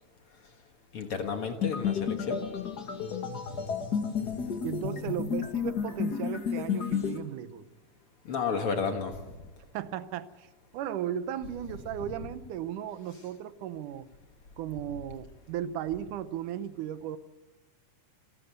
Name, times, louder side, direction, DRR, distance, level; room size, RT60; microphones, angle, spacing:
voice 1, 0.9-2.4 4.2-4.6 8.3-9.2 12.1-12.2, left 5 dB, 50° left, 6 dB, 2.1 m, -32 dB
sound 1, 1.6-7.2, left 7 dB, 35° left, 2.0 m, -32 dB
voice 2, 4.6-7.7 9.7-10.5 10.7-14.1 14.6-17.2, right 10 dB, 80° right, 14 dB, 2.3 m, -36 dB
28.0 x 12.0 x 8.0 m, 1.2 s
omnidirectional pair, 3.6 m